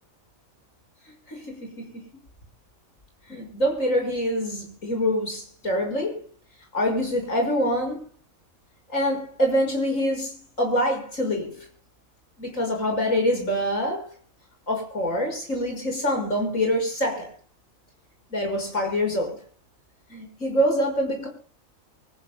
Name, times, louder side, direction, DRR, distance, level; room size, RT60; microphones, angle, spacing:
voice 1, 1.3-2.0 3.3-6.2 6.7-8.0 8.9-11.7 12.4-14.1 14.7-17.3 18.3-19.4 20.1-21.3, equal, 70° left, 6.2 m, -25 dB
25.5 x 15.0 x 2.2 m
omnidirectional pair, 1.4 m